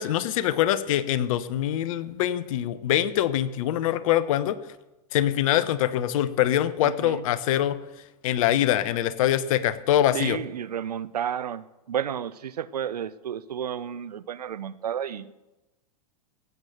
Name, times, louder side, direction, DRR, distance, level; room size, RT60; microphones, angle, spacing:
voice 1, 0.0-4.6 5.1-7.8 8.2-10.4, left 12 dB, 60° left, 15 dB, 0.9 m, -24 dB
voice 2, 6.8-7.2 10.1-15.3, right 9 dB, 80° right, 17 dB, 0.6 m, -32 dB
16.0 x 8.1 x 6.6 m, 1.1 s
hypercardioid pair, 100°, 20 cm